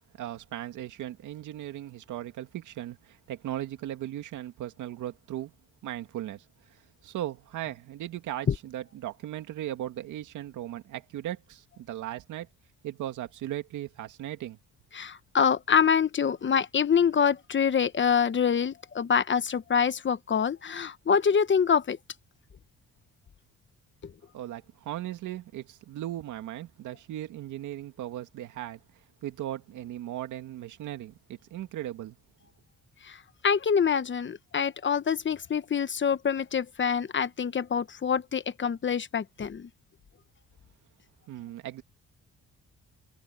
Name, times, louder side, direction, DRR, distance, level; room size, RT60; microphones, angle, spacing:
voice 1, 0.2-5.5 5.8-6.4 6.7-12.5 12.8-14.6 24.3-28.8 29.2-32.2 41.3-41.8, right 13 dB, 85° right, 2.3 m, -37 dB
voice 2, 14.9-22.0 24.0-24.1 33.0-33.2 33.4-39.7, left 7 dB, 40° left, 1.2 m, -25 dB
cardioid pair, 90°, 30 cm